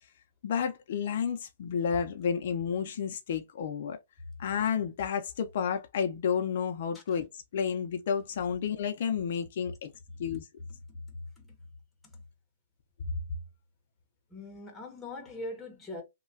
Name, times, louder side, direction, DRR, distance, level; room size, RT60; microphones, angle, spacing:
voice 1, 0.4-4.0 4.4-7.3 7.5-9.9 10.2-10.5, left 7 dB, 55° left, 0.5 m, -31 dB
voice 2, 10.7-11.6 12.0-12.2 14.3-16.0, left 2 dB, 5° left, 0.9 m, -42 dB
3.1 x 2.2 x 2.6 m
hypercardioid pair, 160°, 0 cm